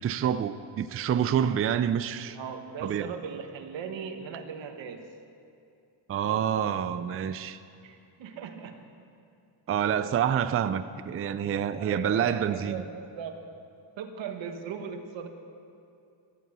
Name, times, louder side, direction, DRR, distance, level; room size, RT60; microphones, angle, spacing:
voice 1, 0.0-2.4 2.8-3.1 6.1-7.6 9.7-12.8, right 9 dB, 35° right, 0.4 m, -27 dB
voice 2, 2.3-5.1 7.8-8.8 11.8-13.5 14.0-15.3, right 6 dB, 90° right, 1.4 m, -38 dB
15.0 x 12.0 x 7.0 m
cardioid pair, 130°, 44 cm